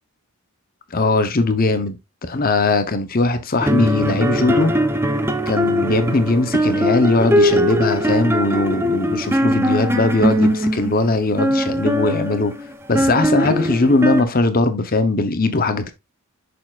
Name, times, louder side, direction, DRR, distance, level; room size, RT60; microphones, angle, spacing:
voice 1, 0.9-2.0 2.2-4.8 5.5-12.5 12.9-15.9, left 2 dB, 40° left, 0.8 m, -19 dB
sound 1, 3.6-14.2, equal, 10° right, 0.7 m, -20 dB
6.6 x 6.5 x 2.4 m
head